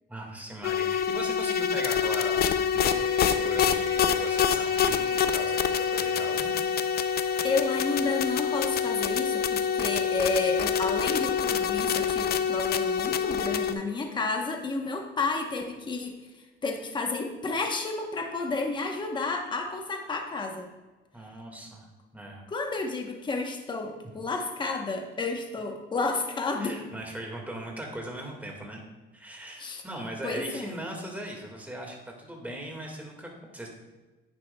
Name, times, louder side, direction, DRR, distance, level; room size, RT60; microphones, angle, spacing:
voice 1, 0.1-6.6 21.1-21.9 22.1-22.4 26.6-28.8 29.1-33.9, right 1 dB, 10° right, 0 dB, 1.8 m, -39 dB
sound 1, 0.6-13.7, left 7 dB, 50° left, 0.5 m, -26 dB
sound 2, 2.8-15.5, right 4 dB, 75° right, 0.9 m, -44 dB
voice 2, 7.4-16.2 16.6-20.7 22.5-26.8 29.6-29.8 30.2-30.8, left 3 dB, 20° left, 3 dB, 0.9 m, -31 dB
10.5 x 9.0 x 2.2 m, 1.1 s
cardioid pair, 140°, 21 cm